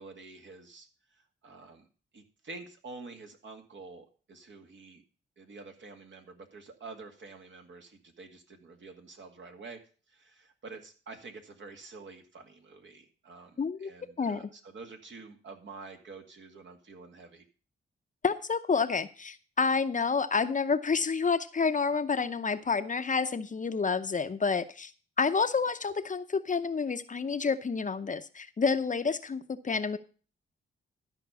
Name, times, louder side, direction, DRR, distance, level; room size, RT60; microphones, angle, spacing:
voice 1, 0.0-1.9 2.1-5.0 5.4-9.8 10.1-17.4, right 3 dB, 65° right, 4 dB, 2.1 m, -48 dB
voice 2, 13.6-13.9 14.2-14.5 18.2-24.9 25.2-30.0, left 5 dB, 40° left, 11 dB, 0.8 m, -29 dB
12.5 x 5.3 x 6.9 m, 0.38 s
cardioid pair, 75°, 21 cm